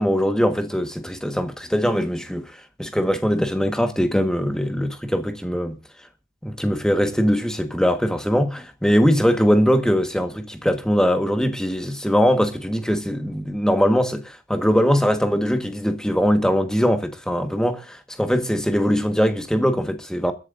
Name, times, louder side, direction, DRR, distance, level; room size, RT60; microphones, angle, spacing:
voice 1, 0.0-5.7 6.4-20.3, equal, 5° left, 1.3 m, -21 dB
29.5 x 11.0 x 2.5 m
head